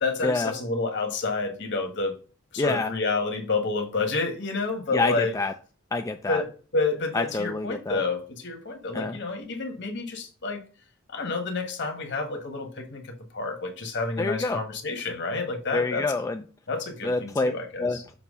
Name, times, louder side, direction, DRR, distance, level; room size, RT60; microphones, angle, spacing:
voice 1, 0.0-2.1 2.5-5.3 6.3-10.6 11.1-16.0 16.7-18.0, left 3 dB, 60° left, 1.5 m, -29 dB
voice 2, 2.6-2.9 4.9-5.5 5.9-6.4 7.1-8.0 8.9-9.2 14.2-14.6 15.7-16.4 17.0-17.5 17.8-18.1, left 3 dB, 15° left, 0.4 m, -27 dB
6.8 x 2.9 x 5.4 m
head